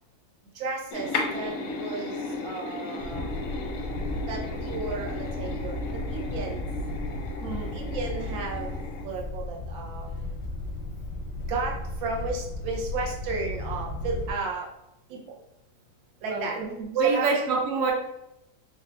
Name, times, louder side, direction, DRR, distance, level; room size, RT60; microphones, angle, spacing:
voice 1, 0.5-3.3 4.3-6.6 7.7-8.7 9.0-10.1 11.5-14.6 15.1-15.2 16.2-16.6 17.0-17.3, right 3 dB, 85° right, -1 dB, 1.5 m, -33 dB
sound 1, 0.9-9.0, left 3 dB, 70° left, 0.8 m, -35 dB
sound 2, 3.0-14.3, left 1 dB, 85° left, 1.3 m, -35 dB
voice 2, 7.4-7.7 16.3-17.9, right 4 dB, 55° right, -1 dB, 0.9 m, -26 dB
4.2 x 3.3 x 2.2 m, 0.89 s
omnidirectional pair, 2.1 m